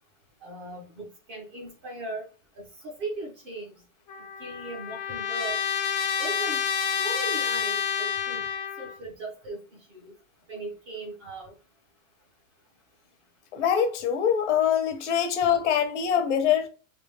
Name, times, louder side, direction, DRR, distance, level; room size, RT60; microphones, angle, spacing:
voice 1, 0.4-2.3 2.6-3.7 4.4-5.6 6.2-6.6 7.0-8.4 8.8-9.6 9.9-10.1 10.5-11.5, right 2 dB, 20° right, 0.6 m, -38 dB
Trumpet, 4.1-9.0, left 7 dB, 35° left, 0.4 m, -29 dB
voice 2, 13.5-16.7, left 8 dB, 60° left, 0.9 m, -24 dB
3.4 x 2.3 x 3.1 m
supercardioid pair, 175°, 41 cm